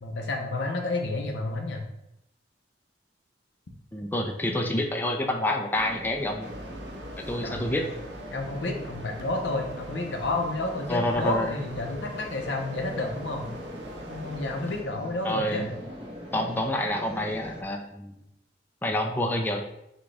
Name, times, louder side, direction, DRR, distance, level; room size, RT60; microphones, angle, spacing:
voice 1, 0.0-1.9 7.4-7.7 8.3-13.5 14.1-15.7, left 2 dB, 80° left, 3 dB, 0.7 m, -30 dB
voice 2, 3.9-6.5 7.3-7.9 10.9-11.5 15.2-15.7 16.3-18.2 18.8-19.6, left 1 dB, 10° left, 2 dB, 0.4 m, -28 dB
sound 1, 5.7-17.6, left 1 dB, 35° right, 1.0 m, -42 dB
sound 2, 6.4-14.8, right 1 dB, 75° right, 0.7 m, -44 dB
6.0 x 2.3 x 3.3 m, 0.84 s
head